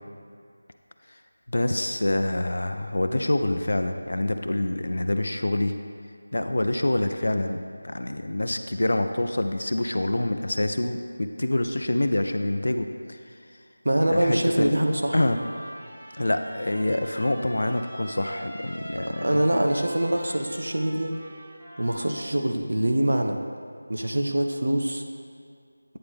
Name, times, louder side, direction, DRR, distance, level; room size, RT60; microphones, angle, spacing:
voice 1, 1.5-5.7 6.3-13.2 14.1-14.7 15.1-15.4 16.2-19.4, left 1 dB, 60° left, 7 dB, 0.4 m, -26 dB
voice 2, 13.8-15.2 19.2-21.2 21.8-23.4 23.9-25.0, right 1 dB, 70° right, 4 dB, 0.7 m, -24 dB
Trumpet, 14.8-22.4, equal, 15° right, 0.7 m, -43 dB
8.8 x 5.2 x 3.4 m, 2.3 s
figure-of-eight pair, 180°, 0 cm